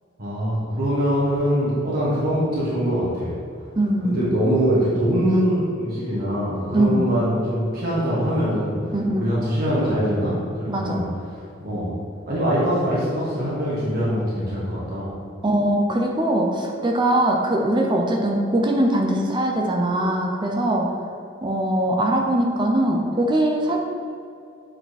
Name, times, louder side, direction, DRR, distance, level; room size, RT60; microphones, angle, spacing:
voice 1, 0.2-3.3 4.0-8.7 9.1-10.3 10.6-11.0 11.6-11.9 12.3-15.1, equal, 50° right, -8 dB, 1.6 m, -23 dB
voice 2, 3.8-4.2 6.7-7.0 8.9-9.3 10.7-11.0 15.4-20.9 21.4-23.8, right 1 dB, 25° right, 1 dB, 0.6 m, -21 dB
8.0 x 4.4 x 4.2 m, 2.5 s
head